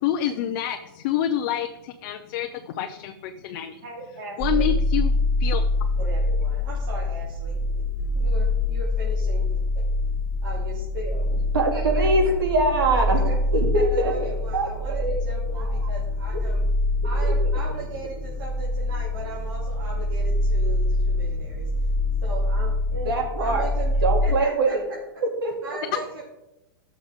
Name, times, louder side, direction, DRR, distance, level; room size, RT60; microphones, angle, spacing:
voice 1, 0.0-3.7 4.4-5.1 5.4-5.6, left 10 dB, 45° left, 5 dB, 0.7 m, -27 dB
voice 2, 3.8-4.8 6.0-7.6 8.1-9.6 10.2-11.3 11.7-12.1 12.9-13.4 13.7-16.6 17.0-21.7 22.2-24.7 25.6-26.2, right 2 dB, 60° right, -6 dB, 3.1 m, -38 dB
sound 1, 4.4-24.3, left 2 dB, 10° right, 1.9 m, -25 dB
voice 3, 11.5-13.2 13.5-14.7 15.0-15.2 15.6-15.9 17.2-17.3 23.1-23.7 24.0-24.8 25.2-25.5, right 2 dB, 90° right, 2 dB, 2.6 m, -23 dB
14.0 x 6.5 x 3.7 m, 0.93 s
supercardioid pair, 150°, 12 cm